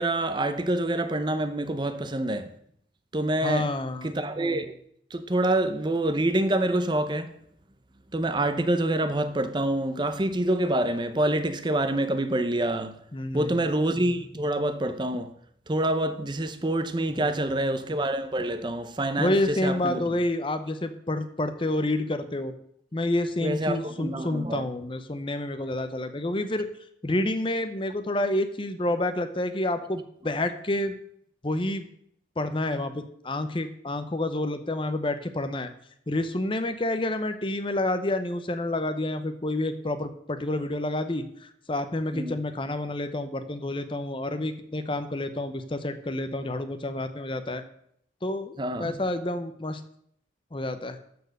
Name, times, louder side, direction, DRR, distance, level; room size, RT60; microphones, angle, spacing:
voice 1, 0.0-2.5 3.1-3.7 4.0-4.7 5.1-7.3 8.1-13.0 13.3-15.3 15.7-20.0 23.4-24.7 42.1-42.4 48.6-48.9, right 1 dB, 25° right, 0.6 m, -26 dB
voice 2, 3.4-4.1 13.1-13.6 17.1-17.7 19.2-22.5 22.9-26.7 27.0-30.9 31.4-31.8 32.4-35.7 36.1-47.6 48.2-49.8 50.5-51.0, left 1 dB, 30° left, 0.7 m, -29 dB
13.5 x 4.6 x 6.6 m
head